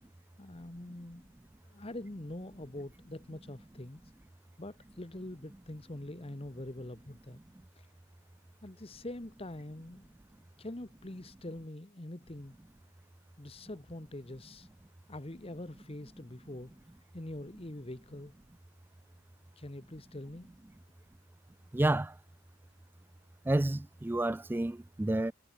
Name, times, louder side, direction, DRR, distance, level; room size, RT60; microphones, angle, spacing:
voice 1, 0.4-1.2 1.6-4.0 4.6-7.4 7.7-7.9 8.6-10.1 10.6-12.5 13.4-14.7 15.1-16.8 17.1-18.3 19.6-20.5, left 1 dB, 30° left, 1.3 m, -44 dB
voice 2, 21.7-22.1 23.5-25.3, right 1 dB, 10° right, 0.3 m, -30 dB
head